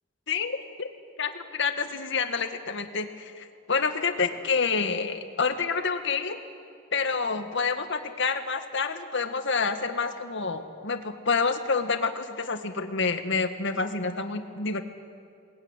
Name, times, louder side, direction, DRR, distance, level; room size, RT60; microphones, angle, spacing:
voice 1, 0.3-0.9 1.2-6.4 6.9-14.8, left 4 dB, 60° left, 7 dB, 1.8 m, -28 dB
27.0 x 21.0 x 9.9 m, 2.4 s
head